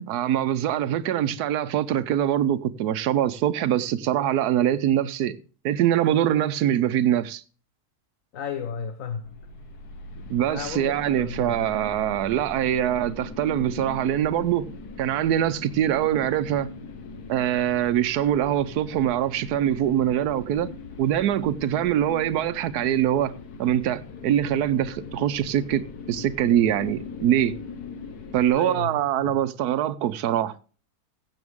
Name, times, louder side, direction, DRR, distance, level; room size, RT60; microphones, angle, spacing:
voice 1, 0.1-5.4 5.6-7.4 10.3-16.7 17.3-20.7 21.0-27.5 28.3-30.5, right 11 dB, 90° right, 1.2 m, -23 dB
voice 2, 8.3-9.3 10.5-11.7 28.5-29.4, left 6 dB, 60° left, 1.3 m, -34 dB
sound 1, 9.2-28.5, left 4 dB, 85° left, 1.6 m, -40 dB
15.5 x 7.7 x 3.6 m
omnidirectional pair, 1.6 m